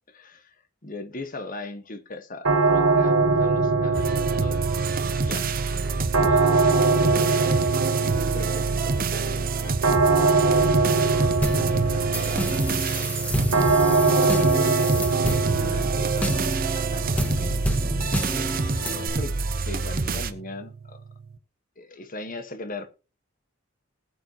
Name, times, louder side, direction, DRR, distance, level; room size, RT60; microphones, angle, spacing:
voice 1, 0.1-0.6 0.8-4.6 5.2-8.1 8.3-10.0 10.9-16.3 16.7-17.5 18.1-19.3 19.6-21.0 21.8-22.9, left 2 dB, 40° left, 1.5 m, -40 dB
sound 1, 2.4-21.3, right 4 dB, 85° right, 1.2 m, -24 dB
sound 2, 3.9-20.3, right 4 dB, 45° right, 0.9 m, -28 dB
sound 3, 11.4-19.1, equal, 5° left, 1.8 m, -29 dB
19.5 x 8.2 x 3.0 m
head